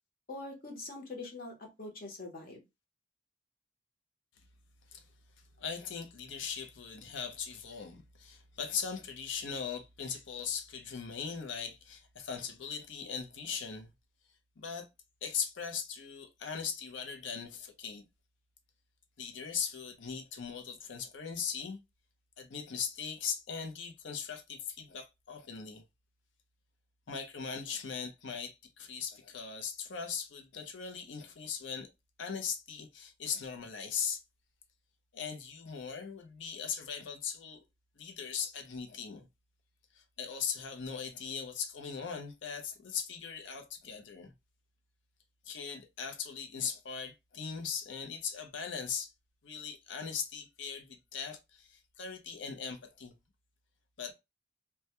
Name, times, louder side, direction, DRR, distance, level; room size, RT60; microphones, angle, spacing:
voice 1, 0.3-2.6, left 2 dB, 50° left, 0.8 m, -43 dB
voice 2, 5.6-13.9 14.6-14.9 15.2-18.0 19.2-21.8 22.4-25.8 27.1-31.9 32.2-34.2 35.1-37.6 38.0-39.2 39.9-44.3 45.5-49.1 49.4-53.1 54.0-54.1, left 6 dB, 85° left, 0.6 m, -39 dB
2.2 x 2.2 x 2.8 m
head